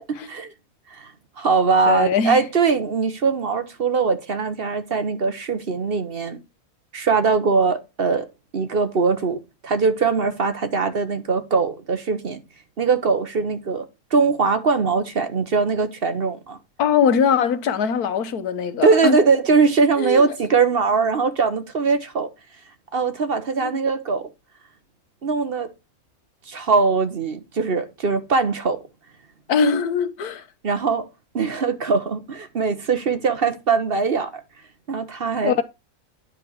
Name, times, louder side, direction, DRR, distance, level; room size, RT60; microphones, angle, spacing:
voice 1, 0.1-0.5 0.9-6.4 6.9-8.3 8.5-12.4 12.8-13.9 14.1-16.6 18.8-22.3 22.9-24.2 25.2-25.7 26.5-28.8 30.6-31.1 31.3-34.4 34.9-35.6, right 4 dB, 45° right, 1.1 m, -21 dB
voice 2, 1.9-2.4 16.8-19.2 20.0-20.2 23.6-23.7 29.5-30.4 35.4-35.6, left 6 dB, 90° left, 1.5 m, -21 dB
9.9 x 5.4 x 4.6 m
omnidirectional pair, 1.6 m